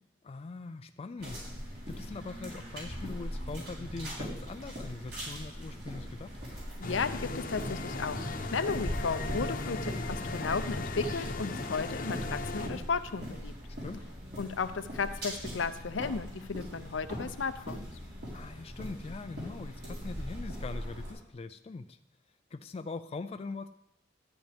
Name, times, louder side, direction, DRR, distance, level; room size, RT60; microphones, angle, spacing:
voice 1, 0.2-6.4 13.8-14.0 18.3-22.0 22.5-23.7, left 3 dB, 30° left, 8 dB, 0.3 m, -42 dB
sound 1, 1.2-21.1, equal, 60° right, 4.1 m, -41 dB
voice 2, 6.8-13.5 14.4-17.8, left 5 dB, 80° left, 11 dB, 0.6 m, -34 dB
sound 2, 6.8-12.7, left 2 dB, 45° left, 0.9 m, -37 dB
13.0 x 8.8 x 3.5 m, 0.84 s
head